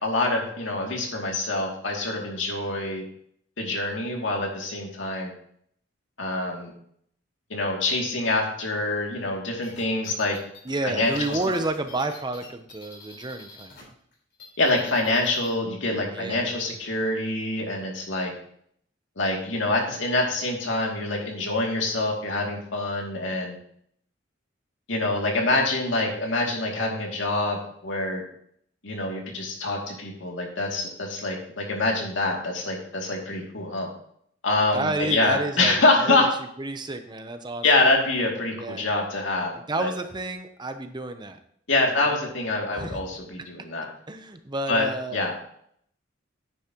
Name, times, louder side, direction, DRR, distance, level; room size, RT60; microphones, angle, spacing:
voice 1, 0.0-3.0 3.6-5.3 6.2-6.7 7.5-10.4 10.8-11.4 14.6-18.3 19.2-23.6 24.9-28.2 28.8-33.9 34.4-36.3 37.6-39.9 41.7-43.9 44.7-45.3, left 2 dB, 75° left, 0 dB, 2.5 m, -25 dB
sound 1, 9.6-13.8 14.1-15.5, left 4 dB, 55° left, 3.9 m, -46 dB
voice 2, 10.6-13.9 16.1-16.7 34.7-36.3 36.6-37.6 38.6-38.9 39.7-41.4 42.0-42.1 42.7-43.0 44.1-45.2, right 2 dB, 25° right, 8 dB, 0.7 m, -30 dB
10.0 x 9.7 x 3.0 m, 0.67 s
head